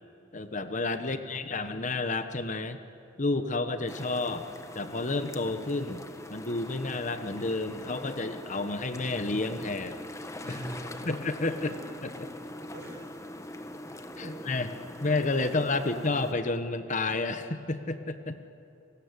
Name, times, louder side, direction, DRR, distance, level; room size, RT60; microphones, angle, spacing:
voice 1, 0.3-2.8 3.2-4.4 4.7-6.0 6.3-10.0 11.0-11.7 14.2-14.7 15.0-18.4, left 3 dB, 40° left, 9 dB, 1.1 m, -30 dB
voice 2, 1.0-1.6 10.4-11.8 12.3-13.4 13.7-14.6 14.9-15.1 15.4-16.0, right 1 dB, 50° right, 1 dB, 6.6 m, -46 dB
sound 1, 3.9-16.3, left 1 dB, 15° left, 1.4 m, -42 dB
30.0 x 19.0 x 9.7 m, 2.8 s
head